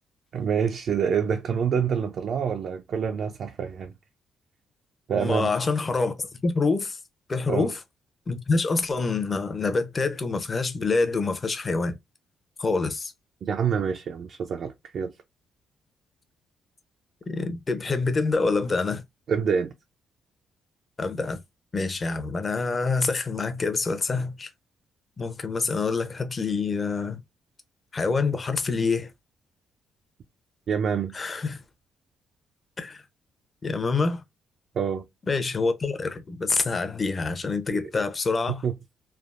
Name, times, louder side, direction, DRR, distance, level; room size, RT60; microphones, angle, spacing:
voice 1, 0.3-3.9 5.1-5.5 7.5-7.7 13.4-15.1 19.3-19.7 30.7-31.2 34.7-35.1 37.7-37.8 38.6-38.7, right 7 dB, 60° right, 0.4 m, -26 dB
voice 2, 5.2-7.0 7.3-7.8 8.3-11.9 12.6-13.1 17.3-19.0 21.0-21.4 21.7-24.5 25.2-27.2 27.9-29.1 31.1-31.6 32.8-33.0 33.6-34.2 35.3-38.6, left 4 dB, 30° left, 0.6 m, -26 dB
3.3 x 2.0 x 2.4 m
cardioid pair, 90°, 0 cm